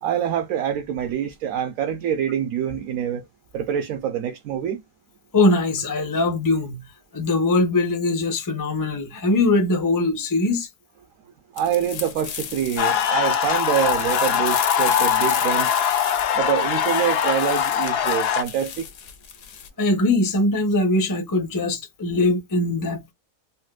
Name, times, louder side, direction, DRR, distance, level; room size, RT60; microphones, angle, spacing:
voice 1, 0.0-3.3 3.5-4.8 11.5-15.8 16.3-18.9, right 9 dB, 65° right, 0.9 m, -25 dB
voice 2, 5.3-6.8 7.1-10.7 19.8-23.1, left 2 dB, 25° left, 0.4 m, -21 dB
sound 1, 11.6-19.7, left 8 dB, 60° left, 0.9 m, -34 dB
sound 2, 12.8-18.4, left 8 dB, 85° left, 0.5 m, -22 dB
4.2 x 2.1 x 2.3 m
omnidirectional pair, 1.6 m